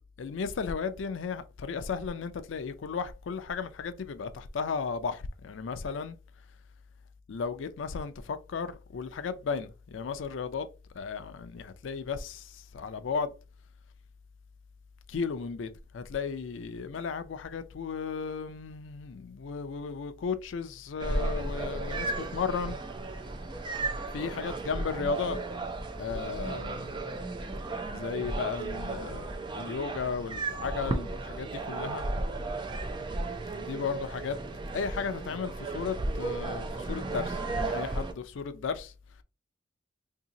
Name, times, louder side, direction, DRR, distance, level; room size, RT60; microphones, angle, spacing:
voice 1, 0.2-6.2 7.3-10.7 10.9-13.3 15.1-22.8 24.1-25.4 26.0-26.9 27.9-32.0 33.5-34.4 34.7-38.9, left 5 dB, 80° left, 0.4 m, -35 dB
sound 1, 21.0-38.1, right 2 dB, 25° right, 0.4 m, -34 dB
2.7 x 2.7 x 3.8 m
head